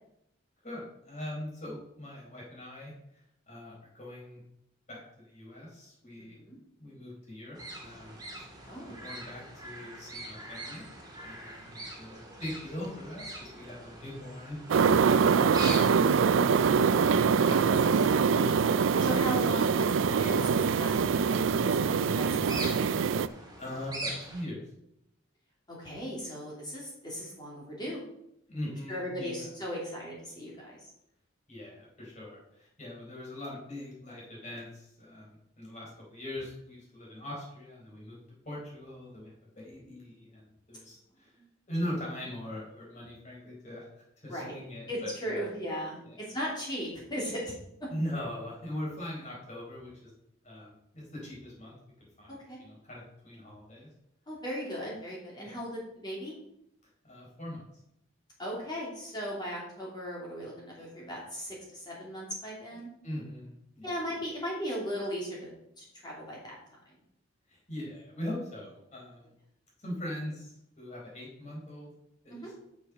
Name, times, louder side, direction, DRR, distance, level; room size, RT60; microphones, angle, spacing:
voice 1, 0.6-4.4 4.9-6.4 6.8-8.2 8.8-10.8 11.2-15.2 15.4-16.8 23.6-24.7 28.5-29.5 31.5-38.2 38.4-41.3 41.7-43.9 44.2-45.5 45.9-46.2 47.9-50.1 50.4-51.8 52.2-53.9 55.4-55.6 57.0-57.6 63.0-63.9 67.5-69.3 69.8-71.9 72.2-72.5, left 1 dB, 35° left, -4 dB, 4.4 m, -41 dB
sound 1, 7.6-24.4, right 1 dB, 20° right, 1.7 m, -43 dB
voice 2, 8.7-9.0 11.4-11.5 17.4-18.7 19.0-22.9 25.7-28.0 28.9-30.9 41.4-41.5 44.3-44.5 44.9-47.5 52.3-52.6 54.3-56.3 58.4-62.9 63.8-65.5 65.8-66.5 72.3-72.5, equal, 20° left, -5 dB, 2.7 m, -37 dB
sound 2, 14.7-23.3, right 6 dB, 75° right, 0.4 m, -24 dB
6.9 x 6.8 x 6.4 m, 0.78 s
head